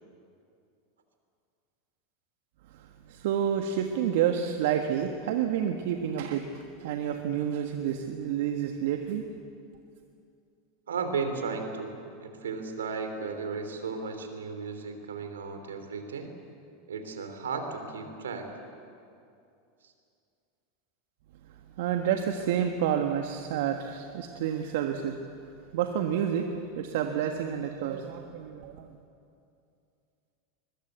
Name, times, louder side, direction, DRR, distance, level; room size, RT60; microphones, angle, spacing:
voice 1, 2.7-9.3 21.8-28.9, right 9 dB, 70° right, 5 dB, 1.4 m, -29 dB
voice 2, 10.9-16.3 16.9-18.5 19.8-19.9, right 5 dB, 85° right, 6 dB, 3.1 m, -35 dB
21.5 x 21.5 x 8.1 m, 2.5 s
hypercardioid pair, 90°, 0 cm